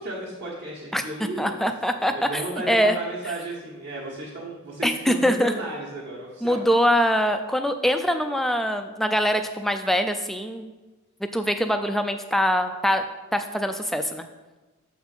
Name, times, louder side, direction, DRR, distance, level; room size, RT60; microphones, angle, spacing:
voice 1, 0.0-1.7 2.0-6.6, right 1 dB, 50° right, -7 dB, 1.5 m, -34 dB
voice 2, 1.4-3.0 4.8-5.5 6.4-10.7 11.3-13.0 13.3-14.3, equal, ahead, 7 dB, 0.4 m, -23 dB
6.8 x 4.2 x 5.5 m, 1.2 s
head